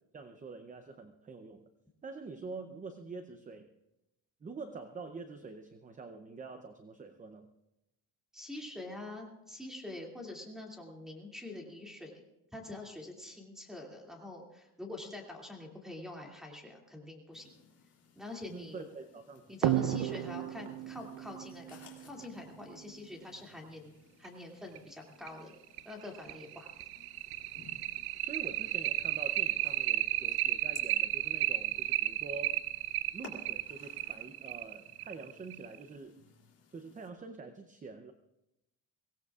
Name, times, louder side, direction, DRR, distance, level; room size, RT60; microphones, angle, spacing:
voice 1, 0.1-1.7 2.0-3.7 4.4-7.5 18.5-19.9 28.2-32.6 33.1-36.2 36.7-38.1, right 4 dB, 20° right, 8 dB, 0.6 m, -46 dB
voice 2, 8.3-12.2 12.5-17.5 18.2-18.8 19.5-25.6 25.8-26.7, left 2 dB, ahead, 0 dB, 2.5 m, -45 dB
sound 1, 17.3-37.1, left 5 dB, 35° left, 3.1 m, -59 dB
sound 2, 19.6-22.8 24.2-24.3 24.8-24.9 25.3-25.4 25.8-35.8, right 15 dB, 60° right, 0.7 m, -33 dB
23.5 x 17.5 x 2.4 m, 0.91 s
cardioid pair, 155°, 43 cm